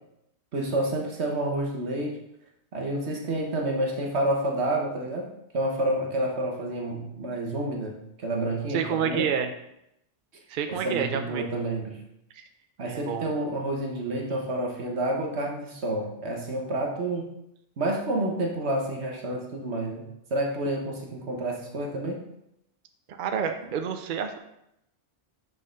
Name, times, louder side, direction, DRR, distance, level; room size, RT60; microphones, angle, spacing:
voice 1, 0.5-2.2 2.7-9.3 10.7-12.0 12.8-17.3 17.8-22.2, right 1 dB, 85° right, 0 dB, 1.5 m, -29 dB
voice 2, 8.7-9.5 10.5-11.4 12.3-12.4 12.8-13.3 23.2-24.4, right 7 dB, 60° right, 7 dB, 0.7 m, -29 dB
6.3 x 4.2 x 5.2 m, 0.81 s
omnidirectional pair, 1.1 m